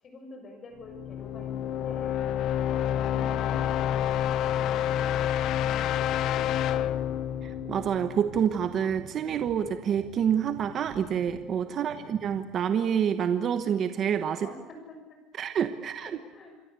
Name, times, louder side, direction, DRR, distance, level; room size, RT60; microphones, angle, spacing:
voice 1, 0.0-2.1 11.8-12.2 14.4-15.2 15.9-16.5, left 2 dB, 30° left, 5 dB, 6.6 m, -48 dB
sound 1, 0.9-8.7, left 10 dB, 45° left, 0.9 m, -28 dB
voice 2, 7.4-14.5 15.4-16.1, right 8 dB, 35° right, 9 dB, 1.1 m, -27 dB
sound 2, 7.4-12.4, right 6 dB, 75° right, 7.4 m, -48 dB
27.5 x 23.0 x 8.3 m, 1.1 s
cardioid pair, 170°, 0 cm